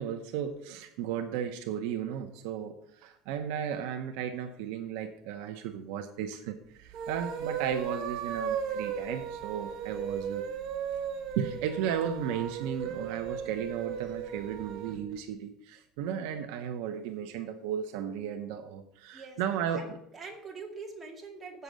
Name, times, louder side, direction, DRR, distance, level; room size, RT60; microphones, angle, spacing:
voice 1, 0.0-10.5 11.4-19.8, right 9 dB, 75° right, 7 dB, 0.9 m, -35 dB
sound 1, 6.8-15.0, right 7 dB, 55° right, 1.2 m, -36 dB
voice 2, 19.7-21.6, right 4 dB, 20° right, -1 dB, 2.2 m, -44 dB
7.9 x 6.9 x 6.2 m, 0.76 s
cardioid pair, 160°, 0 cm